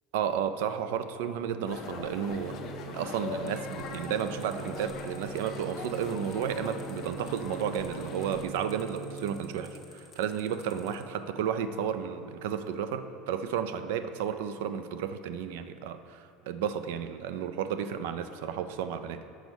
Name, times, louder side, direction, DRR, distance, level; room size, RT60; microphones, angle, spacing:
voice 1, 0.1-2.6 2.9-19.3, right 8 dB, 80° right, 10 dB, 0.4 m, -32 dB
sound 1, 1.7-8.4, left 5 dB, 40° left, 0.6 m, -41 dB
Bowed string instrument, 1.7-10.1, right 8 dB, 65° right, 0.7 m, -44 dB
sound 2, 3.5-11.0, left 5 dB, 20° left, 0.9 m, -55 dB
6.2 x 4.6 x 5.3 m, 2.6 s
cardioid pair, 155°, 0 cm